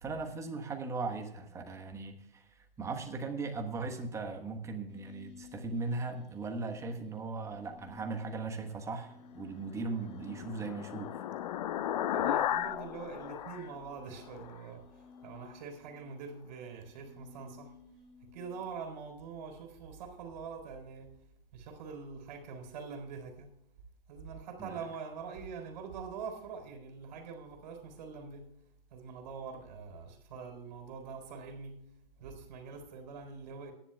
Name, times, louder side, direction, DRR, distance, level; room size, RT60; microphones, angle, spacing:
voice 1, 0.0-11.1 24.6-24.8, right 3 dB, 10° right, 1.2 m, -38 dB
sound 1, 4.9-18.9, left 6 dB, 20° left, 3.9 m, -57 dB
sound 2, 9.8-14.6, left 11 dB, 45° left, 0.5 m, -35 dB
voice 2, 12.1-14.9 15.2-17.7 18.3-21.1 21.5-23.5 24.1-28.5 28.9-31.8 32.2-33.7, right 5 dB, 50° right, 3.9 m, -44 dB
22.5 x 10.5 x 2.3 m
hypercardioid pair, 140°, 29 cm